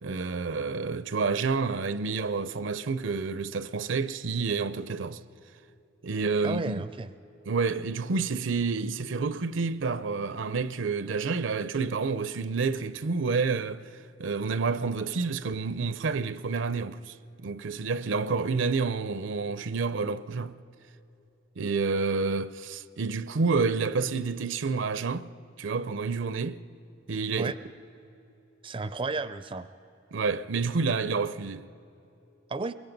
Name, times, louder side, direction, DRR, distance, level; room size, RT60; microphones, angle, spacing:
voice 1, 0.0-5.2 6.0-6.8 7.5-13.8 14.2-20.6 21.6-25.3 25.6-26.6 27.1-27.5 30.1-31.7, right 4 dB, 75° right, 0.6 m, -29 dB
voice 2, 6.4-7.1 27.3-27.6 28.6-29.7 32.5-32.7, right 3 dB, 25° right, 0.4 m, -32 dB
23.0 x 23.0 x 5.3 m
head